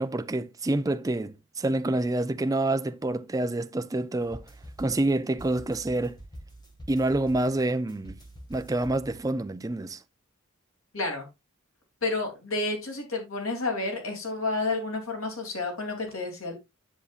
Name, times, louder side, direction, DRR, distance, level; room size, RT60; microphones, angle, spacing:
voice 1, 0.0-4.4 4.8-6.2 6.9-8.2 8.5-10.0, right 2 dB, 15° right, 0.4 m, -27 dB
sound 1, 4.2-9.5, right 1 dB, 20° left, 2.0 m, -46 dB
voice 2, 10.9-11.3 12.0-16.5, left 3 dB, 90° left, 2.9 m, -30 dB
10.0 x 7.0 x 2.5 m
head